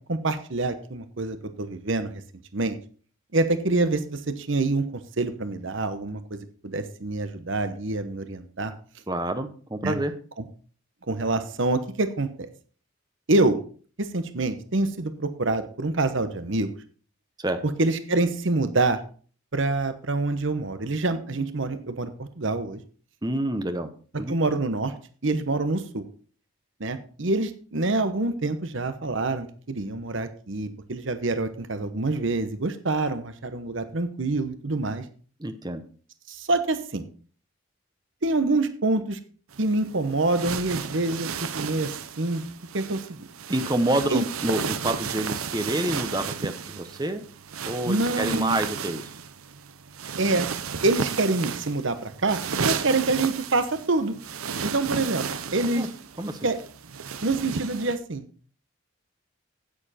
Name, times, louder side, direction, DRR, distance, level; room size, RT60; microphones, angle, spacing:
voice 1, 0.1-2.1 2.5-2.8 3.3-4.8 5.2-6.4 6.6-8.7 9.8-10.0 10.4-10.5 11.1-12.5 13.3-13.6 14.0-16.7 17.8-19.0 19.5-22.8 24.3-24.9 25.2-26.0 26.8-35.0 36.3-37.0 38.2-39.2 39.6-41.3 41.6-42.4 42.7-43.3 44.1-44.3 47.8-48.6 50.2-50.5 50.8-52.4 52.6-54.1 54.6-55.3 55.5-55.9 56.4-56.6 57.2-58.2, right 2 dB, 65° right, 10 dB, 1.0 m, -26 dB
voice 2, 9.1-10.1 17.4-17.6 23.2-23.9 24.2-24.3 35.4-35.8 43.5-47.2 47.6-49.0 55.7-55.9 56.2-56.4, right 1 dB, 20° right, 9 dB, 0.8 m, -28 dB
sound 1, 39.5-58.0, right 6 dB, 90° right, 0.8 m, -33 dB
9.8 x 9.0 x 4.3 m, 0.41 s
head